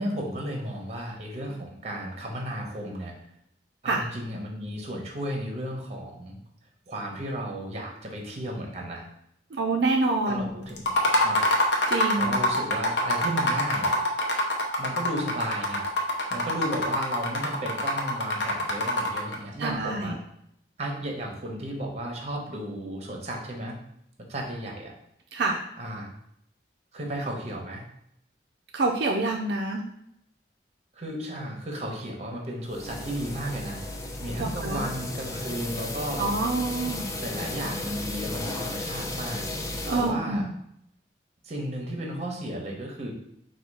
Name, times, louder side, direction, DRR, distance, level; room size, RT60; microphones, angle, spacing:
voice 1, 0.0-3.1 3.8-6.4 6.9-9.1 10.3-10.9 11.2-11.4 12.2-14.0 14.8-20.2 20.8-23.8 24.3-24.9 25.8-26.1 26.9-27.8 30.9-33.8 34.2-36.3 37.2-39.5 39.9-40.4 41.4-43.1, right 1 dB, 35° right, 1 dB, 0.9 m, -34 dB
voice 2, 9.5-10.5 11.9-12.3 19.6-20.2 25.3-25.6 28.7-29.8 34.4-34.8 36.2-37.1 39.9-40.5, right 3 dB, 65° right, 0 dB, 0.4 m, -26 dB
sound 1, 10.8-19.4, left 1 dB, 75° left, 0.7 m, -25 dB
sound 2, 32.7-40.1, left 2 dB, 20° left, 0.4 m, -34 dB
4.2 x 2.3 x 4.7 m, 0.76 s
head